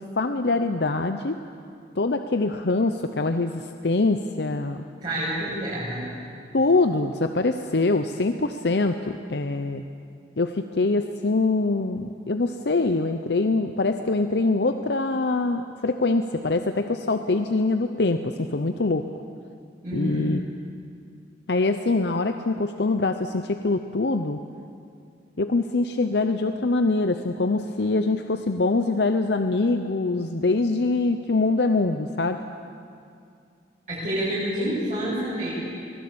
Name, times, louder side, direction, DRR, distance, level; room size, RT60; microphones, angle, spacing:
voice 1, 0.0-1.4 2.0-4.9 6.5-9.8 10.4-19.0 19.9-20.4 21.5-24.4 25.4-32.4, left 3 dB, 70° left, 7 dB, 0.8 m, -24 dB
voice 2, 5.0-6.1 19.8-20.3 33.9-35.5, equal, 45° right, -10 dB, 7.2 m, -28 dB
24.0 x 17.5 x 8.7 m, 2.4 s
head